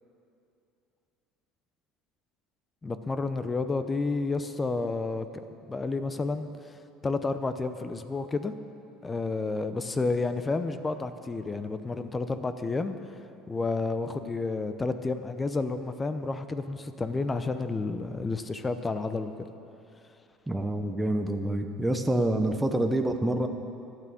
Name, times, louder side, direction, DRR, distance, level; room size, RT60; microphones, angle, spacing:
voice 1, 2.8-5.3 5.7-6.7 7.0-8.5 9.0-13.0 13.5-19.3, left 3 dB, 20° left, 10 dB, 0.7 m, -30 dB
voice 2, 20.5-23.5, right 1 dB, 10° right, 4 dB, 0.9 m, -27 dB
12.0 x 9.4 x 7.6 m, 2.7 s
supercardioid pair, 90°, 0 cm